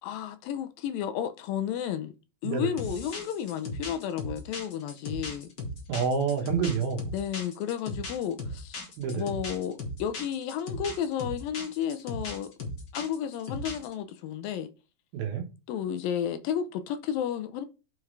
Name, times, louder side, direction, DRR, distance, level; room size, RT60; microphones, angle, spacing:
voice 1, 0.0-2.1 2.4-5.5 7.1-8.8 9.1-12.5 12.9-14.7 15.7-17.7, left 9 dB, 80° left, 2.3 m, -32 dB
sound 1, 2.8-13.9, left 2 dB, 45° left, 1.4 m, -37 dB
voice 2, 5.9-7.1 9.0-9.2 15.1-15.5, right 6 dB, 75° right, 3.2 m, -28 dB
9.6 x 5.8 x 3.2 m
omnidirectional pair, 4.3 m